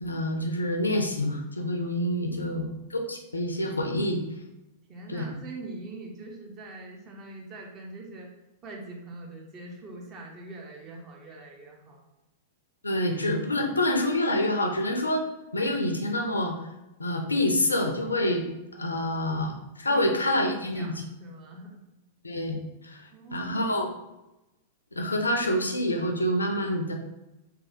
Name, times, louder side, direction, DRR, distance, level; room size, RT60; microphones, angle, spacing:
voice 1, 0.0-4.2 5.1-5.4 12.8-15.2 15.5-16.5 17.0-21.0 22.2-23.0 23.3-23.9 24.9-26.9, left 1 dB, 85° left, 3 dB, 0.4 m, -27 dB
voice 2, 2.3-2.8 4.9-8.3 8.6-12.0 19.9-21.8 23.1-23.7, right 2 dB, 30° right, -1 dB, 0.8 m, -43 dB
3.2 x 2.2 x 2.7 m, 0.94 s
figure-of-eight pair, 100°, 0 cm